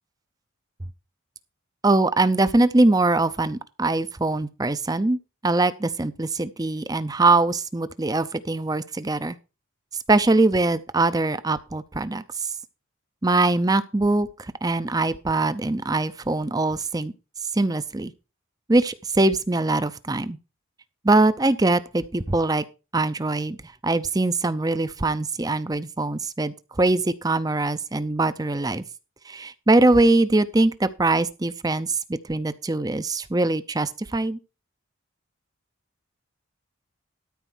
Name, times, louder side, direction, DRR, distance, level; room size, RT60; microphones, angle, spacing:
voice 1, 1.8-9.4 10.1-12.5 13.2-17.1 17.5-18.1 18.7-20.4 21.0-22.6 22.9-23.6 23.8-28.8 29.3-34.4, right 2 dB, 15° right, 0.5 m, -22 dB
13.0 x 4.4 x 6.2 m
head